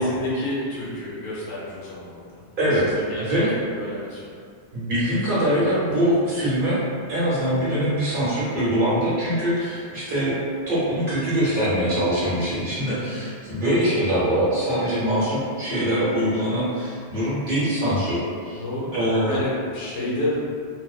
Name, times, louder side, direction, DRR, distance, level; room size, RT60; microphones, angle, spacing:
voice 1, 0.0-2.3 2.7-3.4 3.8-4.2 12.8-13.1 18.5-18.9 19.3-20.4, left 1 dB, 85° left, -7 dB, 1.1 m, -29 dB
voice 2, 3.2-3.5 4.7-6.8 7.1-10.3 10.7-18.6 18.9-19.4, equal, 55° right, -10 dB, 0.9 m, -23 dB
2.6 x 2.0 x 2.3 m, 2.2 s
omnidirectional pair, 1.1 m